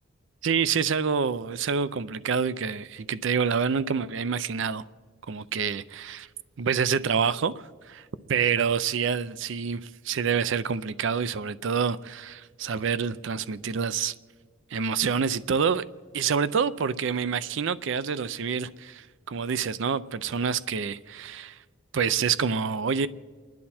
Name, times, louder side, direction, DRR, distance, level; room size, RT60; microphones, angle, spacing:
voice 1, 0.4-4.8 5.3-6.3 6.6-14.1 14.7-15.8 16.1-21.6 21.9-23.1, right 6 dB, 60° right, 0.4 m, -27 dB
30.0 x 10.5 x 4.3 m
head